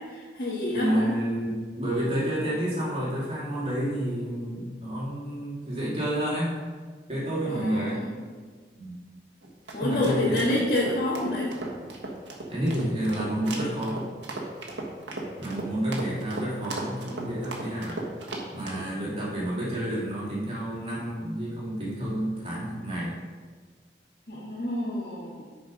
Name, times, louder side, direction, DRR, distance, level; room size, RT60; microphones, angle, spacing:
voice 1, 0.0-1.1 7.5-8.2 9.7-11.5 24.3-25.4, left 1 dB, 55° left, -8 dB, 1.6 m, -28 dB
voice 2, 0.7-6.5 7.1-8.0 8.8-9.0 9.7-10.4 12.5-14.1 15.4-18.0 18.5-23.1, right 1 dB, 35° right, -7 dB, 2.7 m, -30 dB
sound 1, 9.4-18.8, right 2 dB, 90° right, 1.5 m, -36 dB
10.0 x 4.8 x 5.1 m, 1.5 s
head